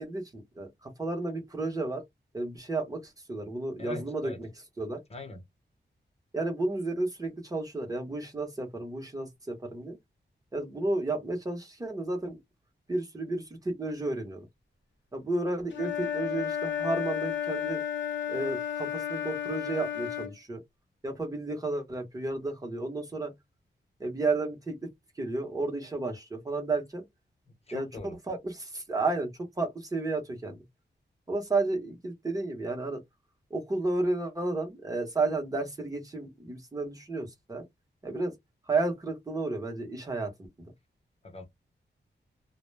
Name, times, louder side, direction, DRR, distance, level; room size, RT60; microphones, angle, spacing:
voice 1, 0.0-2.0 2.3-4.5 4.8-5.0 6.3-10.0 10.5-12.4 12.9-14.5 15.1-17.8 18.3-20.6 21.0-23.3 24.0-24.8 25.2-27.0 27.7-29.3 29.6-30.6 31.3-33.0 33.5-37.6 38.0-38.3 38.7-40.3 40.6-40.7, right 2 dB, 20° right, 0.8 m, -32 dB
voice 2, 3.8-4.4 5.1-5.4 27.7-28.2 41.2-41.5, left 2 dB, 35° left, 0.7 m, -41 dB
Wind instrument woodwind instrument, 15.7-20.3, left 9 dB, 90° left, 0.7 m, -32 dB
2.1 x 2.1 x 3.2 m
wide cardioid pair, 140°, 19 cm